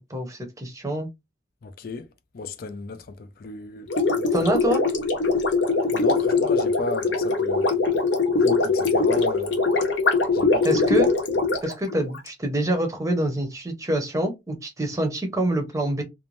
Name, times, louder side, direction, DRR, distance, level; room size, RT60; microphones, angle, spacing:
voice 1, 0.1-1.1 4.3-4.8 10.6-11.1 11.6-16.0, right 1 dB, 20° right, 0.7 m, -26 dB
voice 2, 1.6-2.1 2.3-3.0 3.4-3.9 4.2-4.5 5.9-7.8 8.4-9.6 10.3-10.7, left 3 dB, 50° left, 0.4 m, -34 dB
Gurgling, 3.9-12.3, left 3 dB, 80° left, 0.7 m, -22 dB
2.5 x 2.1 x 3.0 m
head